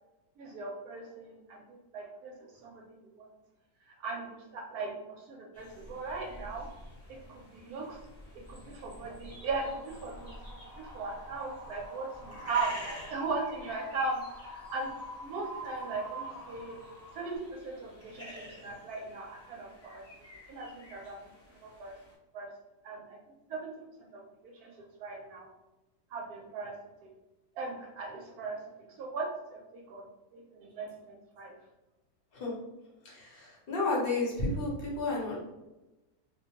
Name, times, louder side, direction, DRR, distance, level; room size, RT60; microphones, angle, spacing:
voice 1, 0.4-2.3 2.6-3.3 4.0-6.6 7.1-8.0 8.5-10.3 10.8-14.9 15.2-16.8 17.1-17.4 17.6-20.0 20.5-21.2 21.6-21.9 22.3-22.5 22.8-23.2 23.5-23.7 24.1-24.7 25.0-25.5 26.1-26.7 27.0-27.1 27.6-28.6 29.0-30.0 30.3-31.5, right 3 dB, 75° right, -1 dB, 1.0 m, -38 dB
sound 1, 5.5-22.1, left 1 dB, 20° left, 0.3 m, -50 dB
Wind, 9.3-17.4, right 1 dB, 10° right, 0.8 m, -47 dB
voice 2, 33.0-35.4, left 2 dB, 50° left, -4 dB, 0.8 m, -32 dB
2.7 x 2.2 x 2.8 m, 1.0 s
omnidirectional pair, 1.7 m